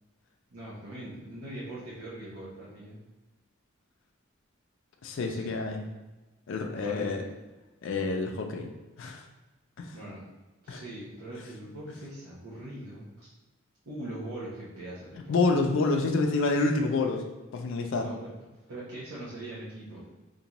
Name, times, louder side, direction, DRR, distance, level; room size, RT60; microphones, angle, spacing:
voice 1, 0.5-3.0 5.2-5.6 6.7-7.3 9.9-10.2 10.6-13.3 13.9-15.3 18.0-18.3 18.7-20.1, right 1 dB, 90° right, -8 dB, 0.8 m, -41 dB
voice 2, 5.0-5.8 6.5-7.2 7.8-8.7 9.0-9.2 9.8-10.0 10.7-10.8 15.3-17.2 17.5-18.1, left 3 dB, 65° left, 3 dB, 0.4 m, -28 dB
3.7 x 2.6 x 2.9 m, 1.1 s
head